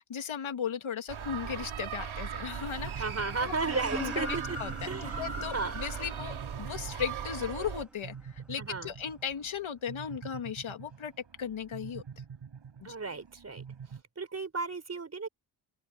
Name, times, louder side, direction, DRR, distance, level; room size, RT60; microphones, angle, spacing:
voice 1, 0.0-2.9 3.4-3.5 4.0-4.7 5.0-11.1 11.4-12.0 12.8-12.9, left 7 dB, 80° left, 2.4 m, -36 dB
sound 1, 1.1-7.8, right 6 dB, 85° right, 4.9 m, -38 dB
sound 2, 2.8-14.0, right 7 dB, 65° right, 5.9 m, -47 dB
voice 2, 3.0-4.6 4.8-5.7 8.6-8.9 12.8-13.6 14.2-15.3, right 4 dB, 30° right, 4.8 m, -34 dB
sound 3, 3.6-9.0, equal, ahead, 2.1 m, -46 dB
open air
wide cardioid pair, 170°, 47 cm